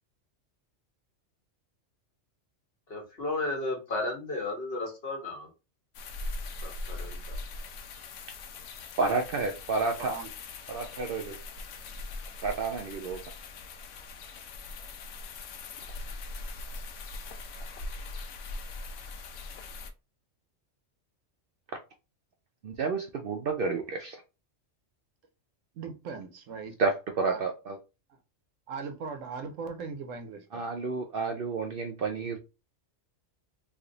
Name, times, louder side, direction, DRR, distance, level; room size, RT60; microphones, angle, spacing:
voice 1, 2.9-5.5 6.6-7.4, left 2 dB, 55° left, 1.3 m, -34 dB
sound 1, 5.9-19.9, left 3 dB, 80° left, 0.9 m, -41 dB
voice 2, 9.0-10.2 10.7-11.4 12.4-13.2 22.6-24.2 26.8-27.8 30.5-32.4, right 4 dB, 60° right, 0.6 m, -30 dB
voice 3, 10.0-10.3 25.7-26.7 27.3-27.4 28.7-30.6, right 5 dB, 85° right, 1.1 m, -39 dB
3.1 x 2.5 x 3.8 m
omnidirectional pair, 1.3 m